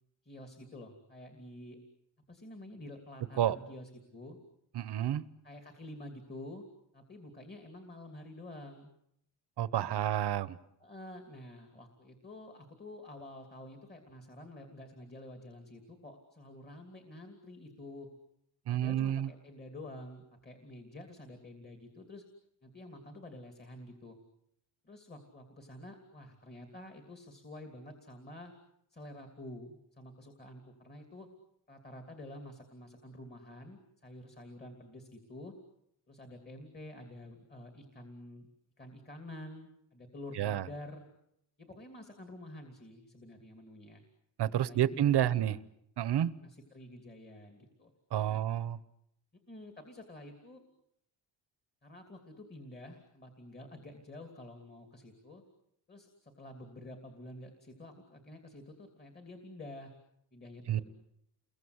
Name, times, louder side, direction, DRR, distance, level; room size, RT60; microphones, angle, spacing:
voice 1, 0.2-1.8 2.3-4.4 5.4-6.6 6.9-8.9 9.7-10.1 10.8-18.1 18.7-22.2 22.6-24.2 24.8-28.5 28.9-31.3 31.7-35.5 36.1-38.5 38.8-41.0 41.6-44.0 44.7-45.5 46.4-47.9 48.3-48.4 49.5-50.6 51.8-55.4 55.9-59.9 60.3-60.8, left 1 dB, 20° left, 5 dB, 2.9 m, -49 dB
voice 2, 4.7-5.2 9.6-10.6 18.7-19.3 40.4-40.6 44.4-45.5 46.0-46.3 48.1-48.8 60.7-60.8, right 11 dB, 55° right, 17 dB, 1.1 m, -29 dB
30.0 x 23.0 x 8.1 m, 0.76 s
wide cardioid pair, 165°, 47 cm